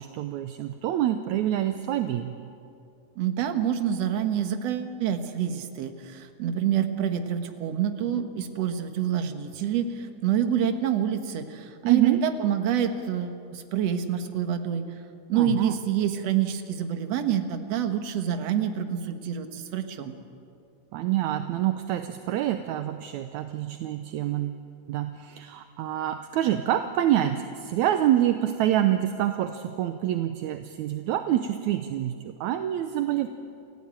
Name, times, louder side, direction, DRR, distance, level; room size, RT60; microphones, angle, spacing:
voice 1, 0.0-2.3 11.8-12.2 15.3-15.7 20.9-24.6 24.9-33.3, right 12 dB, 75° right, 8 dB, 2.0 m, -26 dB
voice 2, 3.2-14.9 15.3-20.1, right 9 dB, 60° right, 7 dB, 2.3 m, -27 dB
28.5 x 16.0 x 8.9 m, 2.5 s
omnidirectional pair, 3.6 m